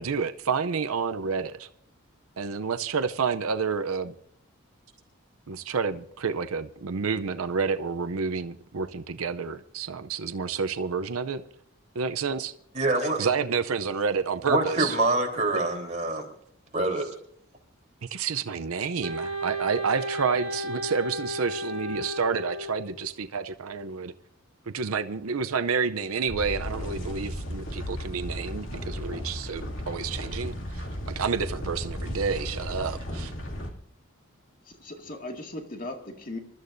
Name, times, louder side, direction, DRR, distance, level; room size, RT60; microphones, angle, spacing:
voice 1, 0.0-1.7 2.4-4.1 5.5-11.4 11.9-12.5 13.2-14.9 18.0-24.1 24.7-30.9 31.2-33.3, right 5 dB, 85° right, 0.6 m, -29 dB
voice 2, 12.7-13.3 14.5-16.3 16.7-17.1, right 2 dB, 35° right, 3.6 m, -25 dB
Wind instrument woodwind instrument, 19.0-23.0, equal, 65° right, 2.5 m, -33 dB
sound 1, 26.3-33.7, equal, 70° left, 2.5 m, -35 dB
voice 3, 34.7-36.4, left 2 dB, 40° left, 2.0 m, -38 dB
27.0 x 13.0 x 2.6 m
head